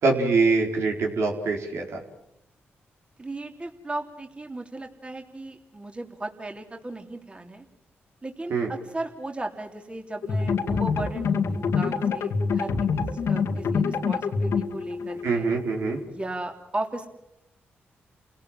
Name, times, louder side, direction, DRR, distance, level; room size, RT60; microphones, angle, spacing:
voice 1, 0.0-2.0 8.5-8.7 15.2-16.0, right 4 dB, 75° right, 1 dB, 4.3 m, -24 dB
voice 2, 3.2-7.6 8.2-13.0 13.3-15.5 16.1-17.1, right 2 dB, 25° right, 3 dB, 3.3 m, -36 dB
sound 1, 10.2-16.0, left 5 dB, 75° left, 2.1 m, -26 dB
29.5 x 17.5 x 7.4 m, 0.85 s
cardioid pair, 65°, 5 cm